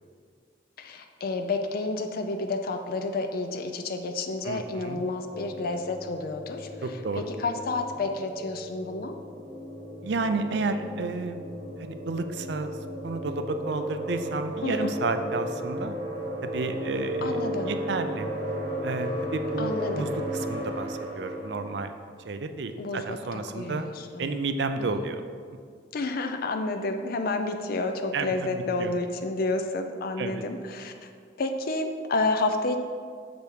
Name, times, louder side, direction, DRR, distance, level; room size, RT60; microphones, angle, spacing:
voice 1, 0.8-6.7 7.2-9.1 14.6-14.9 17.2-17.7 19.6-20.1 22.8-23.2 23.5-24.3 24.8-25.1 25.9-31.1 31.4-32.8, left 2 dB, 50° left, 6 dB, 0.4 m, -30 dB
voice 2, 4.4-5.0 6.8-7.3 10.0-11.4 11.8-12.8 13.0-15.9 16.4-17.4 17.7-18.3 18.8-22.0 22.3-23.9 24.2-25.2 28.1-28.9 30.2-30.4, right 3 dB, 65° right, 8 dB, 0.4 m, -31 dB
sound 1, 5.3-21.8, equal, 85° right, 1.9 m, -34 dB
6.8 x 5.1 x 4.6 m, 2.1 s
head